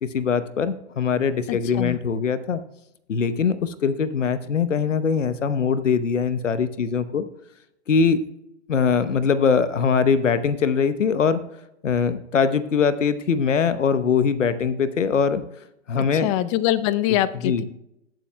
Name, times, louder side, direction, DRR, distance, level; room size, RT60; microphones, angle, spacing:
voice 1, 0.0-2.6 3.1-7.2 7.9-8.2 8.7-11.4 11.8-15.4 15.9-16.3 17.4-17.6, left 6 dB, 85° left, 13 dB, 0.9 m, -22 dB
voice 2, 1.5-2.0 16.1-17.6, left 13 dB, 30° left, 16 dB, 0.5 m, -23 dB
20.0 x 7.6 x 2.2 m, 0.84 s
hypercardioid pair, 115°, 36 cm